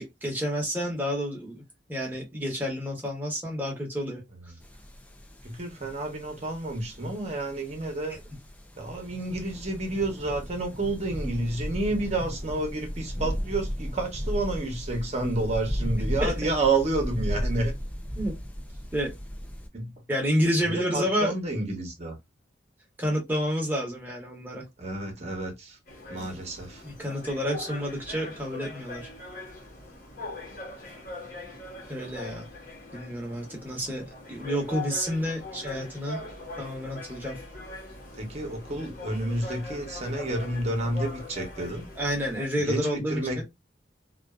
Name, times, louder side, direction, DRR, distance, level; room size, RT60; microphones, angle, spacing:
voice 1, 0.0-1.6 1.9-4.2 16.2-16.3 18.1-18.3 18.9-19.1 20.1-21.3 23.0-24.6 26.8-29.1 31.9-32.5 32.9-36.2 36.6-37.4 42.0-43.4, equal, 10° right, 1.0 m, -29 dB
sound 1, 4.6-19.7, equal, 10° left, 0.4 m, -35 dB
voice 2, 5.4-8.2 8.8-17.7 19.7-19.9 20.6-22.2 24.8-25.8 26.1-26.8 38.2-41.8 42.6-43.4, right 2 dB, 40° right, 0.9 m, -30 dB
sound 2, 25.9-42.5, left 2 dB, 50° left, 1.0 m, -41 dB
2.6 x 2.3 x 2.3 m
head